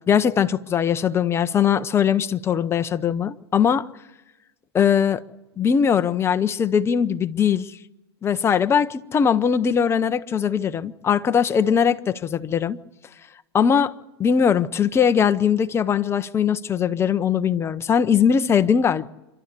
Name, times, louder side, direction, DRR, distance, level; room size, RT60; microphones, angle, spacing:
voice 1, 0.1-3.9 4.7-5.2 5.6-7.7 8.2-12.8 13.5-13.9 14.2-19.1, left 7 dB, 20° left, 0.8 m, -20 dB
26.5 x 12.0 x 8.3 m
hypercardioid pair, 125°, 14 cm